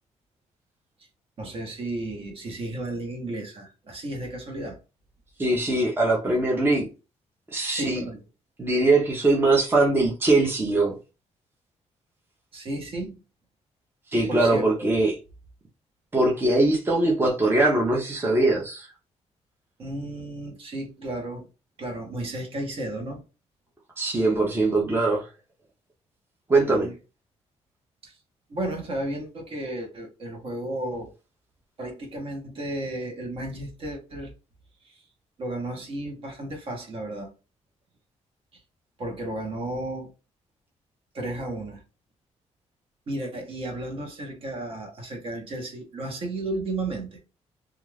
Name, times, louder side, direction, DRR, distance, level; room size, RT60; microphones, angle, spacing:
voice 1, 1.4-4.8 7.7-8.2 12.5-13.2 14.3-14.9 19.8-21.5 21.8-23.2 26.7-26.9 28.0-28.2 28.5-31.1 31.8-34.3 34.8-35.0 35.4-37.3 38.5-38.6 39.0-40.1 41.1-41.8 43.1-47.2, right 1 dB, 50° right, 1.0 m, -33 dB
voice 2, 5.4-6.8 7.5-8.0 8.6-11.0 14.1-15.2 16.1-18.9 24.0-25.2 26.5-26.9, right 2 dB, 20° right, 0.6 m, -21 dB
2.4 x 2.3 x 3.2 m
cardioid pair, 140°, 12 cm